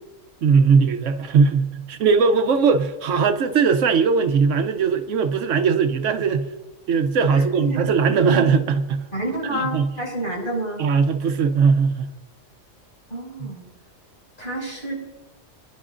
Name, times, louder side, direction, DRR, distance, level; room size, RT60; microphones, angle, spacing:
voice 1, 0.4-6.5 6.9-9.0 9.5-9.9 10.8-12.1 13.4-13.5, right 5 dB, 75° right, 9 dB, 1.0 m, -19 dB
voice 2, 7.3-7.8 8.2-8.4 9.1-10.8 13.1-13.6 14.4-14.9, right 1 dB, 40° left, -4 dB, 5.9 m, -29 dB
27.0 x 11.0 x 2.5 m, 1.1 s
omnidirectional pair, 1.3 m